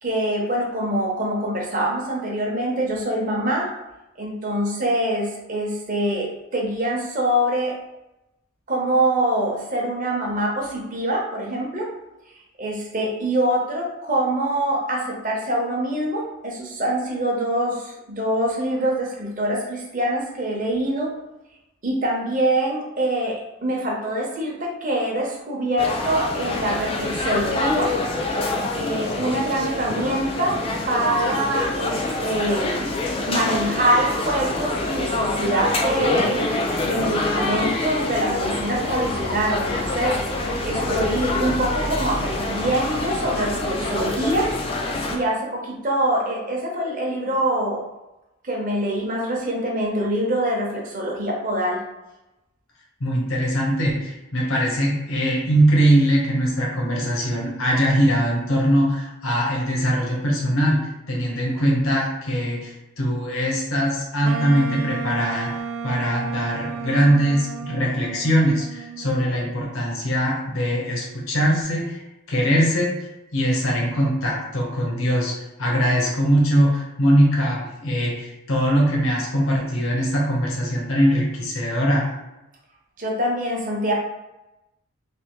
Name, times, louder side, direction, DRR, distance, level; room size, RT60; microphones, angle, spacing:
voice 1, 0.0-3.7 4.2-7.7 8.7-11.9 12.6-21.1 21.8-27.9 28.7-30.6 30.9-32.9 33.3-36.4 36.8-40.2 40.6-44.5 45.1-47.8 48.4-51.8 83.0-83.9, right 1 dB, 40° right, -2 dB, 0.7 m, -24 dB
sound 1, 25.8-45.2, left 2 dB, 25° left, 0.3 m, -26 dB
voice 2, 53.0-65.6 65.8-72.0 72.3-75.3 75.6-82.1, equal, 80° left, -2 dB, 0.9 m, -21 dB
Wind instrument woodwind instrument, 64.2-69.3, right 6 dB, 85° right, 0.3 m, -32 dB
3.3 x 2.5 x 3.0 m, 0.96 s
head